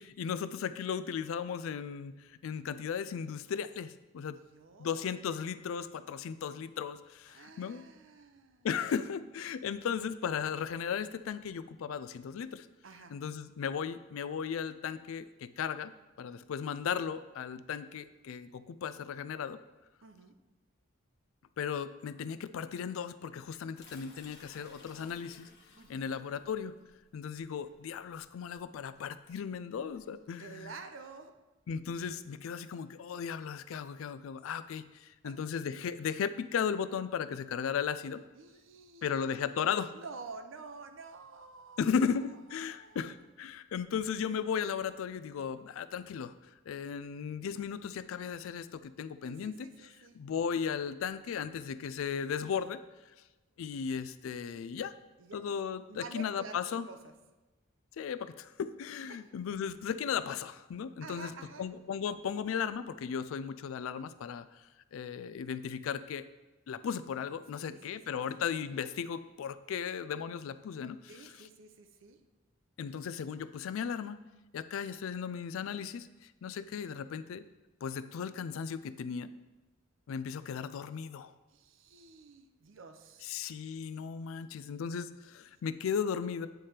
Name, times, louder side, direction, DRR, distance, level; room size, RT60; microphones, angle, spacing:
voice 1, 0.0-4.4 4.8-7.8 8.6-12.7 13.1-15.9 16.2-19.6 21.6-25.5 25.9-26.8 27.1-30.7 31.7-38.2 39.0-39.9 41.8-46.3 46.7-52.8 53.6-54.9 55.3-56.9 58.0-61.3 61.6-64.5 64.9-66.2 66.7-71.0 72.8-74.2 74.5-76.1 76.4-77.5 77.8-79.3 80.1-81.3 83.2-86.5, left 7 dB, 80° left, 14 dB, 0.3 m, -36 dB
voice 2, 4.5-5.1 7.3-8.7 12.8-13.2 20.0-20.4 25.8-26.1 30.4-31.3 35.2-35.4 38.3-39.6 39.9-41.9 42.5-43.1 49.2-50.2 55.2-55.4 55.9-57.1 59.1-59.2 61.0-61.7 67.6-68.0 71.1-72.2 81.5-83.4, right 4 dB, 70° right, 8 dB, 0.6 m, -49 dB
sound 1, 23.8-30.2, left 3 dB, 55° left, 1.2 m, -58 dB
9.1 x 3.3 x 4.3 m, 1.1 s
head